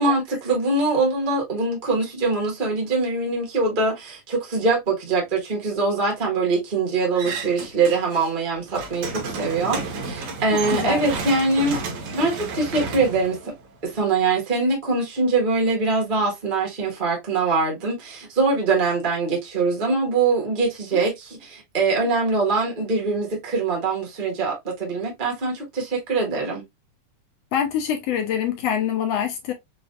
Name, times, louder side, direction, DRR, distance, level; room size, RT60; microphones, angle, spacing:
voice 1, 0.0-11.8 12.1-13.4 13.8-26.6, right 3 dB, 40° right, 0.6 m, -23 dB
sound 1, 7.1-8.3 8.6-14.0, right 4 dB, 70° right, 2.7 m, -31 dB
voice 2, 10.7-11.0 20.9-21.1 27.5-29.5, left 8 dB, 75° left, 1.5 m, -25 dB
6.0 x 2.5 x 2.5 m
omnidirectional pair, 3.6 m